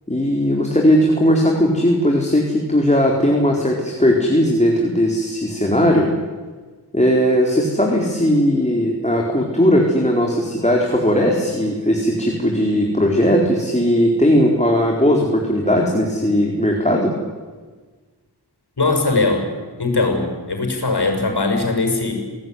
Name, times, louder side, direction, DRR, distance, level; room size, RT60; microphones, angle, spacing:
voice 1, 0.1-6.1 6.9-17.1, equal, 15° left, 0 dB, 4.4 m, -17 dB
voice 2, 18.8-19.5 19.8-22.1, left 3 dB, 65° left, 4 dB, 6.6 m, -20 dB
27.5 x 18.5 x 9.5 m, 1.4 s
wide cardioid pair, 60°, 41 cm